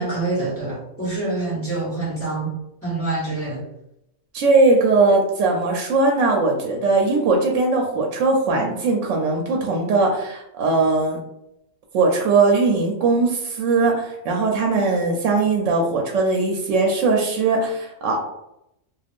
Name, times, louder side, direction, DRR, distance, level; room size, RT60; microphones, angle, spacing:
voice 1, 0.0-2.5 2.8-3.6, right 2 dB, 10° left, -7 dB, 1.1 m, -26 dB
voice 2, 4.3-11.2 11.9-18.2, right 3 dB, 75° right, 1 dB, 0.9 m, -19 dB
2.4 x 2.4 x 3.4 m, 0.82 s
omnidirectional pair, 1.3 m